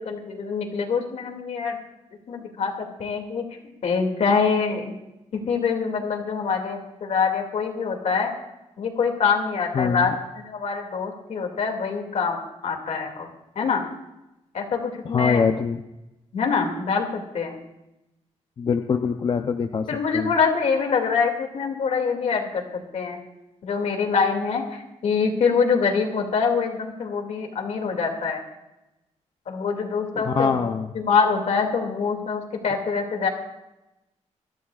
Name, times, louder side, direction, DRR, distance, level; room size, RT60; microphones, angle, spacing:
voice 1, 0.1-1.8 2.3-2.7 3.0-3.4 3.8-4.9 5.5-8.3 8.8-13.3 13.6-13.8 14.5-15.4 16.3-17.6 19.9-22.6 22.9-23.2 23.6-28.4 29.5-33.3, left 5 dB, 65° left, 3 dB, 2.4 m, -25 dB
voice 2, 9.7-10.1 15.0-15.8 18.6-19.9 20.1-20.3 30.1-30.9, left 6 dB, 40° left, 5 dB, 0.6 m, -23 dB
23.0 x 14.0 x 2.4 m, 0.93 s
wide cardioid pair, 170°, 12 cm